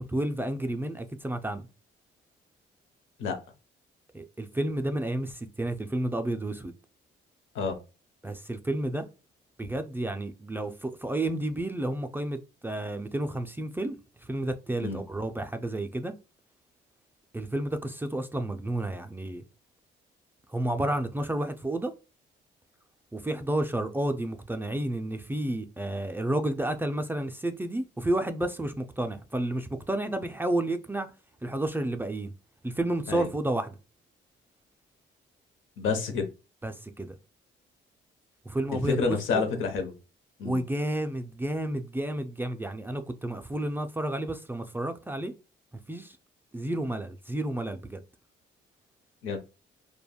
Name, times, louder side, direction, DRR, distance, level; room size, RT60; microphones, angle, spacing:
voice 1, 0.0-1.7 4.1-6.7 8.2-9.0 9.6-14.0 14.2-16.1 17.3-19.4 20.5-21.9 23.1-31.1 31.4-32.3 32.6-33.8 36.6-37.2 38.5-39.5 40.4-45.3 45.9-46.2 46.5-48.0, right 1 dB, 10° right, 0.3 m, -31 dB
voice 2, 35.8-36.3 38.7-39.9 40.4-40.6 49.2-49.4, left 5 dB, 80° left, 0.7 m, -29 dB
3.3 x 2.2 x 2.2 m
cardioid pair, 90°, 20 cm